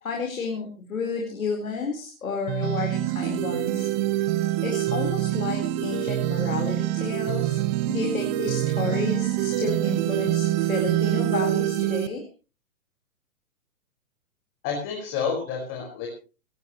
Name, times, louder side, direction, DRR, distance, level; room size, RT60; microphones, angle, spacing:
voice 1, 0.0-7.6 7.9-12.2, left 5 dB, 75° left, 1 dB, 4.5 m, -31 dB
sound 1, 2.5-12.1, right 14 dB, 30° right, 1.1 m, -25 dB
voice 2, 14.6-16.1, left 6 dB, 30° left, 0 dB, 5.3 m, -29 dB
20.5 x 17.5 x 3.1 m, 0.33 s
hypercardioid pair, 125°, 42 cm